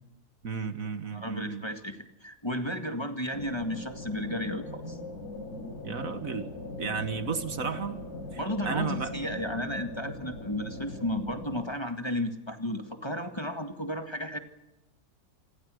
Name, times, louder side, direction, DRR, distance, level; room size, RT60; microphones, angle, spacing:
voice 1, 0.4-1.7 5.8-6.5 6.8-8.0 8.3-8.4 8.7-9.1, right 6 dB, 60° right, 10 dB, 1.8 m, -33 dB
voice 2, 1.1-5.0 8.4-14.4, left 1 dB, 15° left, 5 dB, 1.9 m, -33 dB
sound 1, 3.3-11.6, left 2 dB, 85° left, 4.7 m, -40 dB
28.5 x 21.0 x 6.5 m, 1.0 s
omnidirectional pair, 1.6 m